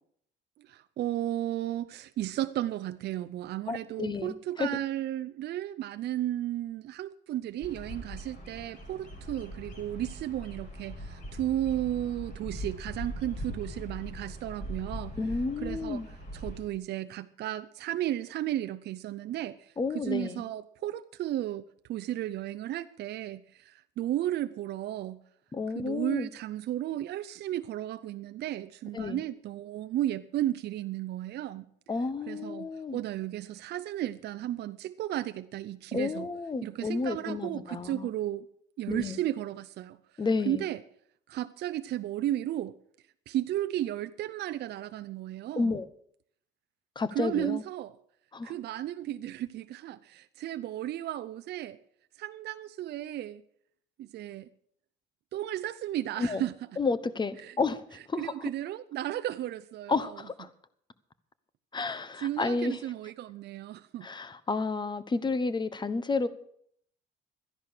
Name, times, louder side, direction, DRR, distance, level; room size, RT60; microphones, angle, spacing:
voice 1, 0.6-15.1 15.6-16.0 16.3-25.2 25.7-31.7 32.3-36.3 36.6-38.5 38.8-40.0 40.5-40.8 41.3-42.7 43.3-45.8 47.1-47.9 48.4-51.8 52.2-53.4 54.0-54.5 55.3-56.5 57.4-57.5 58.2-60.2 62.2-64.1, right 13 dB, 55° right, 0.6 m, -34 dB
voice 2, 3.7-4.7 15.2-16.1 19.8-20.4 25.5-26.3 28.9-29.2 31.9-33.0 35.9-38.1 38.9-39.2 40.2-40.6 45.5-45.9 46.9-47.6 48.3-48.5 56.2-56.4 56.8-58.5 59.9-60.5 61.7-62.8 64.0-66.3, left 4 dB, 20° left, 1.0 m, -31 dB
Bird vocalization bird call bird song, 7.6-16.6, equal, 40° left, 5.3 m, -41 dB
13.0 x 10.5 x 6.5 m
cardioid pair, 100°, 20 cm